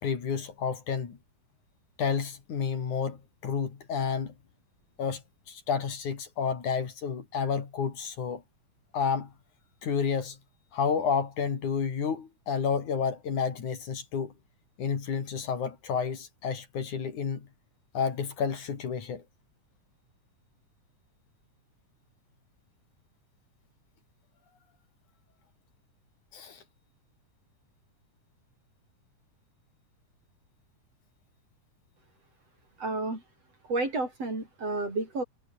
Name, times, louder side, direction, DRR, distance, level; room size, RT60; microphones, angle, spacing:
voice 1, 0.0-1.2 2.0-4.3 5.0-8.4 8.9-9.3 9.8-10.4 10.7-14.3 14.8-17.5 17.9-19.2 26.3-26.6, left 6 dB, 65° left, 4.5 m, -30 dB
voice 2, 32.8-33.2 33.7-35.2, right 2 dB, 45° right, 8.8 m, -31 dB
omnidirectional pair, 3.8 m